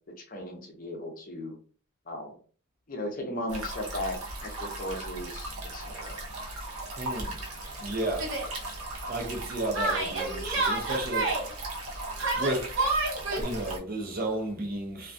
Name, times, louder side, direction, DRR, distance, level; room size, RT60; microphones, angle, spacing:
voice 1, 0.2-1.6 2.1-2.4 2.9-4.2 4.4-6.2, left 1 dB, 40° left, 0.6 m, -36 dB
sound 1, 3.5-13.8, right 2 dB, 90° right, 0.7 m, -38 dB
voice 2, 7.0-7.4 7.8-8.3 9.1-11.4 12.3-12.8 13.4-15.1, right 1 dB, 45° right, 0.6 m, -33 dB
Yell, 8.2-8.5 9.7-11.4 12.2-13.4, right 2 dB, 65° right, 0.9 m, -28 dB
2.2 x 2.2 x 2.5 m
head